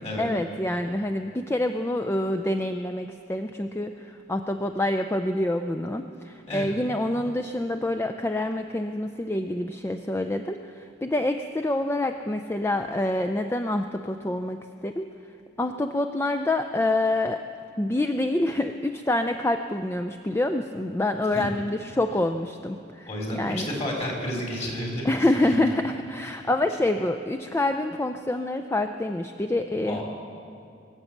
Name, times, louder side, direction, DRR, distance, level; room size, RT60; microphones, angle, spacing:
voice 1, 0.2-17.4 17.8-23.7 25.0-30.0, left 1 dB, 15° left, 7 dB, 0.4 m, -27 dB
voice 2, 23.1-25.1 29.9-30.0, left 1 dB, 35° left, -2 dB, 3.3 m, -31 dB
23.0 x 7.9 x 7.2 m, 2.5 s
head